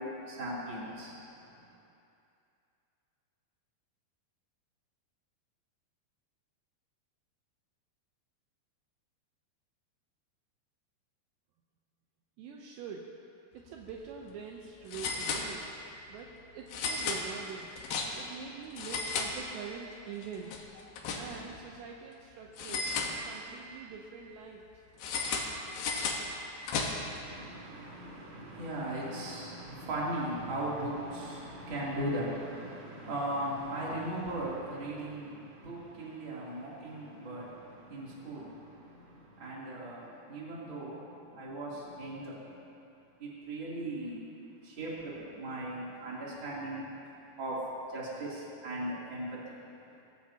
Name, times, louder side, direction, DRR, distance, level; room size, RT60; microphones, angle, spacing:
voice 1, 0.0-1.6 27.2-42.6 43.2-44.2 44.6-46.9 47.4-49.6, right 1 dB, 30° right, -7 dB, 3.3 m, -38 dB
voice 2, 12.4-13.1 13.5-15.7 16.1-17.7 18.1-20.6 21.2-24.6, right 6 dB, 75° right, 0 dB, 2.9 m, -44 dB
sound 1, 13.7-13.9 14.2-14.3 14.9-15.9 16.7-18.4 18.7-19.9 20.2-21.6 22.6-23.7 25.0-27.2, left 4 dB, 65° left, 2.7 m, -35 dB
22.5 x 16.0 x 2.9 m, 2.7 s
omnidirectional pair, 5.3 m